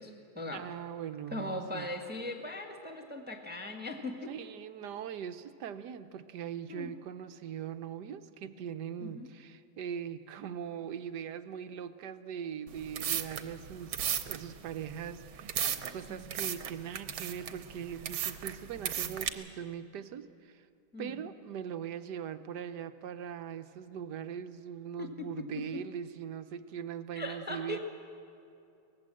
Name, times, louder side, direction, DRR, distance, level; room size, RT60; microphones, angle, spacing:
voice 1, 0.0-0.6 1.3-4.3 6.7-7.0 9.0-9.3 16.1-16.3 20.9-21.3 25.0-25.8 27.1-27.8, left 2 dB, 5° right, 2 dB, 1.5 m, -40 dB
voice 2, 0.5-1.9 4.3-20.7 21.0-27.8, right 8 dB, 65° right, 10 dB, 1.3 m, -41 dB
sound 1, 12.7-19.3, right 9 dB, 85° right, 1.9 m, -36 dB
23.5 x 19.0 x 7.7 m, 2.5 s
omnidirectional pair, 2.2 m